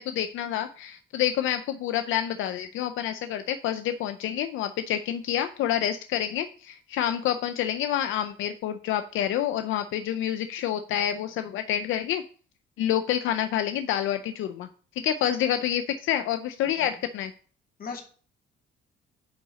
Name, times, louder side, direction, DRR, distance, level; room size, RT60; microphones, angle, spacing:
voice 1, 0.0-12.2 12.8-14.7 15.0-17.3, left 10 dB, 85° left, 9 dB, 0.5 m, -28 dB
voice 2, 16.6-17.0 17.8-18.0, left 5 dB, 45° left, 2 dB, 2.2 m, -39 dB
9.6 x 4.1 x 5.0 m, 0.42 s
cardioid pair, 90°, 20 cm